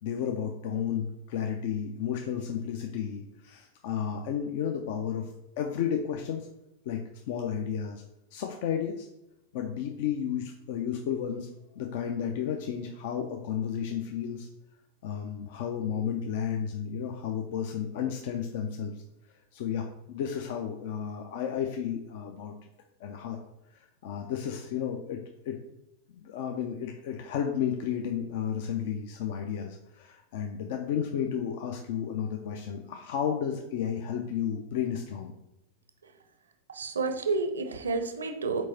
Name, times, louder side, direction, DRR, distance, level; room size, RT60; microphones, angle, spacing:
voice 1, 0.0-6.5 6.9-8.0 8.3-9.1 9.5-14.5 15.0-19.0 19.5-22.5 23.0-23.4 23.7-25.6 26.1-35.3, left 8 dB, 50° left, 3 dB, 0.4 m, -32 dB
voice 2, 36.7-38.7, right 4 dB, 70° right, 6 dB, 0.5 m, -30 dB
4.5 x 4.3 x 2.7 m, 0.86 s
figure-of-eight pair, 90°, 0 cm